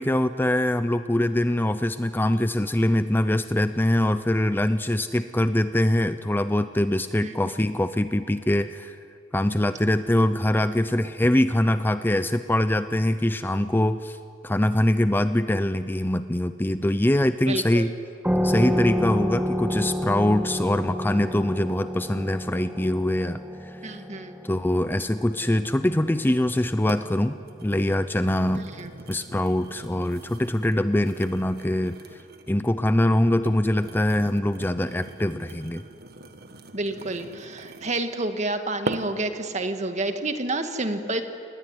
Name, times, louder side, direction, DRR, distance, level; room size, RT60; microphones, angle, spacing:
voice 1, 0.0-9.0 9.3-14.2 14.4-17.9 18.4-23.8 24.4-28.7 29.1-32.0 32.5-35.8, left 1 dB, 10° left, 11 dB, 0.6 m, -23 dB
voice 2, 7.2-7.5 17.5-17.8 23.8-24.4 28.6-28.9 36.7-41.2, right 2 dB, 40° right, 7 dB, 1.9 m, -29 dB
sound 1, 18.2-27.4, equal, 10° right, 1.4 m, -29 dB
sound 2, 26.1-26.2 26.9-27.1 27.4-32.6 33.2-38.1 38.9-39.3 39.8-40.1, right 2 dB, 60° right, 1.6 m, -40 dB
28.5 x 20.0 x 9.7 m, 2.4 s
head